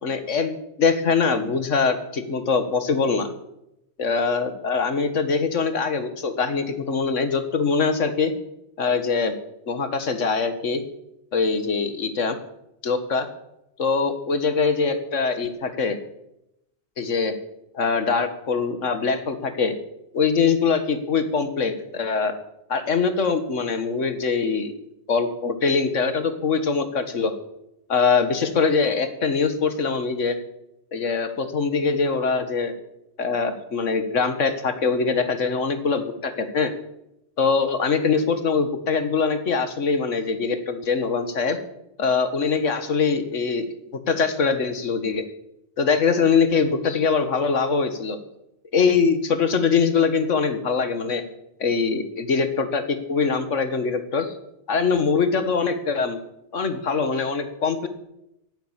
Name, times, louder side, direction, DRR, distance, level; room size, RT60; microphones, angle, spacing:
voice 1, 0.0-3.3 4.0-8.3 8.8-9.3 9.7-10.8 11.3-12.4 12.8-13.3 13.8-16.0 17.0-17.3 17.7-19.7 20.1-22.4 22.7-24.7 25.1-27.3 27.9-30.4 30.9-32.7 33.2-36.7 37.4-41.6 42.0-43.7 44.1-45.2 45.8-48.2 48.7-51.2 51.6-54.3 54.7-56.2 56.5-57.9, left 5 dB, 80° left, 10 dB, 1.8 m, -23 dB
16.0 x 9.5 x 7.4 m, 0.85 s
omnidirectional pair, 1.3 m